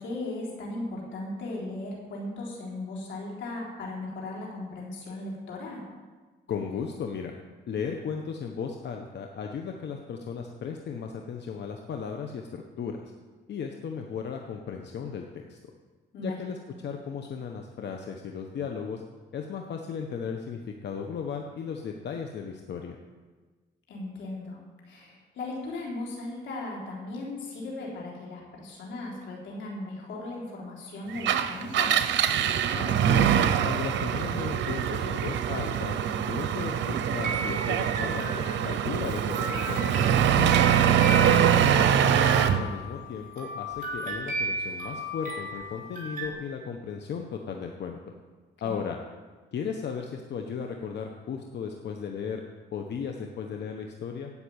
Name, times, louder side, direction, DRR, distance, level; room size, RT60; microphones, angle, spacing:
voice 1, 0.0-5.9 16.1-16.4 23.9-32.1 41.1-41.4 48.6-48.8, left 2 dB, 90° left, -3 dB, 3.9 m, -37 dB
voice 2, 6.5-7.3 7.7-13.1 13.5-15.6 16.2-19.0 19.3-23.0 32.7-33.3 33.6-35.9 36.3-40.6 41.1-48.1 48.6-49.0 49.5-52.4 52.7-54.3, left 6 dB, 70° left, 3 dB, 1.2 m, -36 dB
Engine, 31.2-42.6, right 9 dB, 85° right, 0.8 m, -24 dB
sound 1, 37.2-38.8 39.3-46.3, right 2 dB, 50° right, 4.8 m, -35 dB
15.5 x 6.0 x 8.7 m, 1.4 s
cardioid pair, 85°, 19 cm